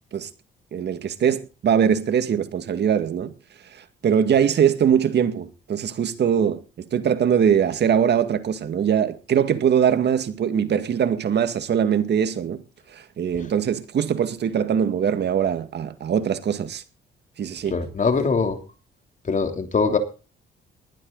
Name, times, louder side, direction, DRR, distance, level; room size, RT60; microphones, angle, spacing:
voice 1, 0.7-3.3 3.7-12.6 12.9-16.8 17.4-17.8, right 8 dB, 60° right, 2.1 m, -22 dB
voice 2, 17.7-18.6 19.2-20.0, left 4 dB, 40° left, 3.2 m, -22 dB
20.0 x 12.0 x 4.0 m
cardioid pair, 90°, 20 cm